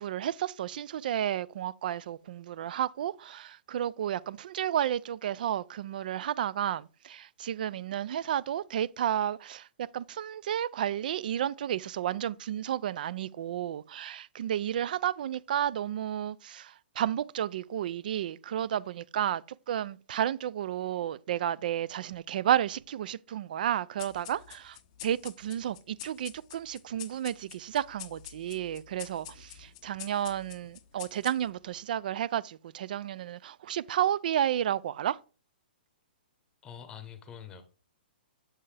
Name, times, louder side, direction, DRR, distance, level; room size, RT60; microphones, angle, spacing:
voice 1, 0.0-35.2, right 10 dB, 55° right, 0.4 m, -32 dB
sound 1, 24.0-31.7, left 13 dB, 35° left, 0.5 m, -48 dB
voice 2, 36.6-37.6, left 8 dB, 15° left, 1.0 m, -45 dB
8.0 x 5.5 x 3.4 m
hypercardioid pair, 160°, 6 cm